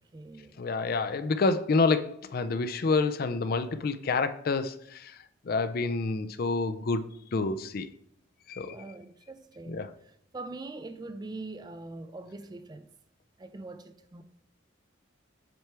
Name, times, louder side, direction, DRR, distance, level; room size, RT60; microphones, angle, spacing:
voice 1, 0.0-0.6 8.6-12.9 13.4-14.2, right 2 dB, 20° right, 0.3 m, -43 dB
voice 2, 0.6-5.2 5.5-7.0 7.3-7.9 8.5-8.8 9.7-9.9, left 3 dB, 50° left, 0.4 m, -28 dB
7.6 x 4.4 x 3.4 m
head